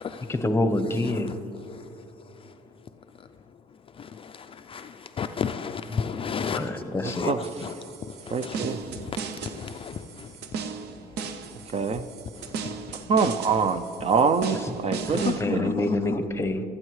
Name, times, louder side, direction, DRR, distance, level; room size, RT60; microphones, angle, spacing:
voice 1, 0.3-1.3 5.9-6.0 6.5-7.3 15.1-16.6, left 2 dB, 15° left, 0.9 m, -27 dB
voice 2, 1.0-1.3 4.0-6.7 7.0-9.2 9.4-10.3 12.4-12.7 15.1-16.2, left 7 dB, 35° left, 0.4 m, -34 dB
sound 1, 7.4-15.4, right 5 dB, 75° right, 0.7 m, -37 dB
voice 3, 8.3-9.1 11.7-12.0 13.1-15.7, right 5 dB, 35° right, 0.5 m, -25 dB
23.5 x 8.7 x 3.2 m
cardioid pair, 110°, 17 cm